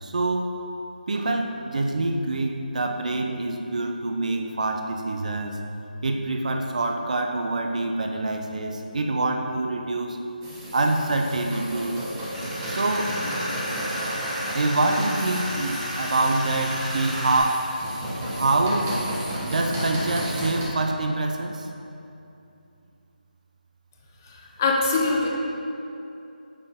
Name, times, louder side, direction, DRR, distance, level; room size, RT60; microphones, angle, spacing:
voice 1, 0.0-0.5 1.1-5.6 6.0-10.2 10.7-12.1 12.7-13.2 14.5-17.8 18.2-19.0 19.4-21.7, right 2 dB, 50° right, 4 dB, 0.6 m, -25 dB
sound 1, 10.4-20.6, right 1 dB, 15° right, 1.1 m, -33 dB
Tools, 12.3-17.4, equal, 5° left, 1.4 m, -32 dB
voice 2, 24.6-25.3, left 3 dB, 20° left, -2 dB, 0.6 m, -21 dB
7.6 x 6.6 x 3.6 m, 2.8 s
figure-of-eight pair, 170°, 5 cm